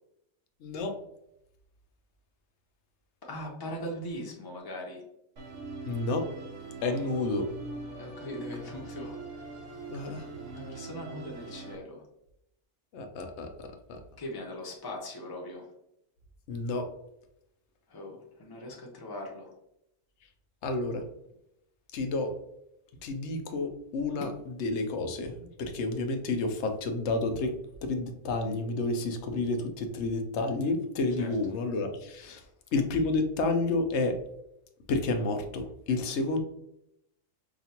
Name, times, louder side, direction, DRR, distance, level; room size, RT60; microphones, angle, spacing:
voice 1, 0.6-0.9 5.9-6.2 6.8-7.5 9.9-10.3 12.9-14.0 16.5-16.9 20.6-21.0 21.9-22.3 23.0-24.3 24.6-27.5 27.8-32.4 32.7-34.1 34.9-36.4, left 3 dB, 70° left, 5 dB, 0.9 m, -30 dB
voice 2, 3.2-5.0 6.9-7.1 8.0-9.2 10.1-12.0 14.2-15.7 17.9-19.5 31.2-31.3 32.2-32.5, left 1 dB, 25° left, -1 dB, 0.6 m, -40 dB
Musical instrument, 5.4-11.8, right 2 dB, 85° right, 1.2 m, -42 dB
5.0 x 2.4 x 2.8 m, 0.80 s
omnidirectional pair, 1.2 m